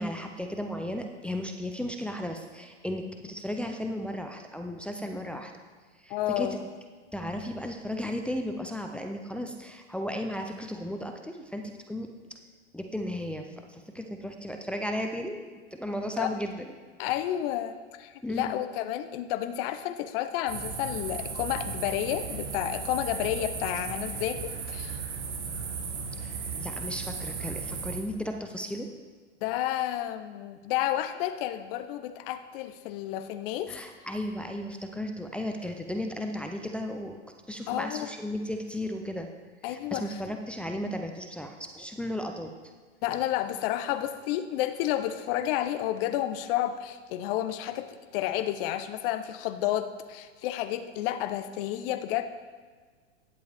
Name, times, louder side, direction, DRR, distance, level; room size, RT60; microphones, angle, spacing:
voice 1, 0.0-5.5 6.0-6.5 7.1-12.1 12.7-16.7 18.2-18.5 26.2-28.9 33.7-37.2 37.5-39.3 39.6-42.5, left 1 dB, 5° left, 3 dB, 0.4 m, -35 dB
voice 2, 6.1-6.6 16.2-16.3 17.0-25.0 29.4-33.8 37.7-38.1 39.6-40.2 43.0-47.9 48.1-52.2, left 12 dB, 50° left, 9 dB, 0.7 m, -31 dB
sound 1, 20.5-28.0, right 5 dB, 85° right, 1.5 m, -35 dB
10.5 x 7.8 x 3.4 m, 1.5 s
hypercardioid pair, 115°, 35 cm